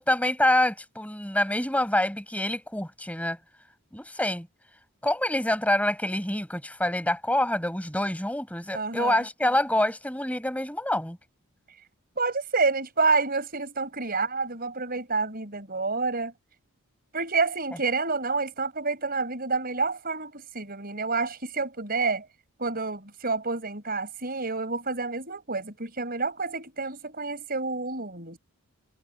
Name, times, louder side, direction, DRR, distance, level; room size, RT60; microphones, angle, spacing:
voice 1, 0.0-3.4 3.9-4.5 5.0-11.2, left 1 dB, 5° left, 6.1 m, -26 dB
voice 2, 8.7-9.2 12.2-16.3 17.1-22.3 22.6-28.4, right 4 dB, 45° right, 5.3 m, -28 dB
head